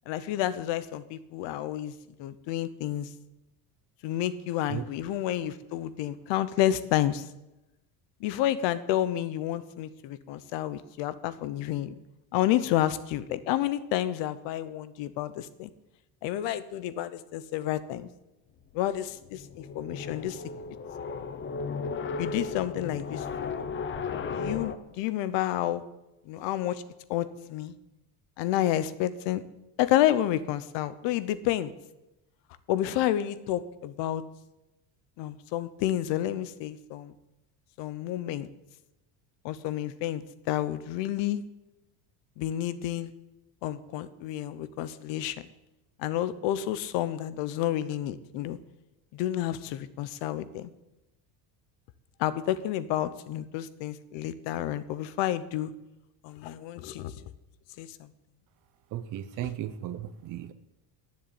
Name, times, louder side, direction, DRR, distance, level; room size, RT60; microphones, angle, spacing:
voice 1, 0.1-1.9 2.2-3.1 4.0-7.3 8.2-12.0 12.3-15.7 16.2-18.1 18.7-20.4 22.2-23.6 24.3-25.8 26.3-26.8 27.1-27.7 28.4-29.4 29.8-31.7 32.7-34.2 35.2-37.1 37.8-38.5 39.4-40.2 40.5-41.4 42.4-43.1 43.6-45.5 46.0-48.6 49.1-50.7 52.2-55.7 56.2-57.1 57.8-58.1, left 13 dB, 70° left, 15 dB, 0.9 m, -30 dB
sound 1, 19.2-24.8, left 5 dB, 25° left, 0.7 m, -35 dB
voice 2, 58.9-60.5, right 11 dB, 45° right, 9 dB, 0.8 m, -35 dB
10.5 x 7.4 x 8.8 m, 0.95 s
cardioid pair, 160°, 45 cm